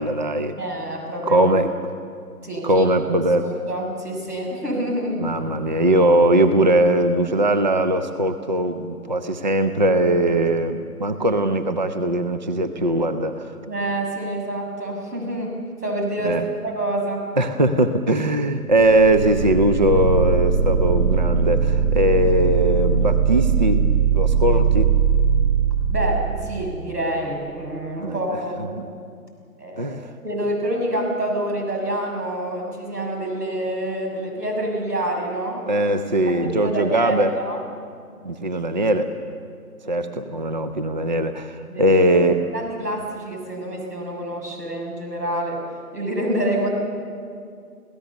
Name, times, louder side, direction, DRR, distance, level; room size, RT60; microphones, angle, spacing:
voice 1, 0.0-0.6 1.3-1.7 2.6-3.5 5.2-13.4 16.2-16.4 17.4-23.8 24.1-24.9 28.0-28.2 28.8-28.9 29.8-30.0 35.7-37.4 38.2-39.1 39.9-42.5, right 1 dB, 30° right, 9 dB, 0.6 m, -20 dB
voice 2, 0.6-1.5 2.4-2.9 3.4-5.2 13.7-17.3 25.9-28.8 29.6-30.0 30.2-35.6 36.3-37.6 41.7-42.0 42.5-45.6 45.9-46.7, right 1 dB, 90° right, 1 dB, 6.8 m, -27 dB
sound 1, 18.8-26.4, right 6 dB, 50° right, 6.7 m, -20 dB
27.5 x 17.0 x 6.9 m, 2.3 s
figure-of-eight pair, 155°, 47 cm